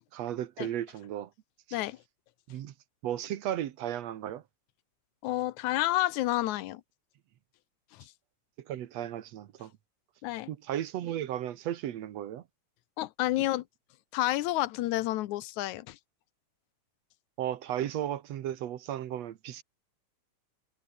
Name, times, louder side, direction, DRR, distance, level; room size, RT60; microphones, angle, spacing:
voice 1, 0.1-1.3 1.7-1.8 2.5-2.7 3.0-4.4 8.7-9.7 10.5-12.4 17.4-19.6, right 11 dB, 65° right, 2.2 m, -35 dB
voice 2, 5.2-6.8 7.9-8.1 10.2-10.5 13.0-13.6 14.1-16.0, left 16 dB, 85° left, 2.2 m, -30 dB
omnidirectional pair, 3.3 m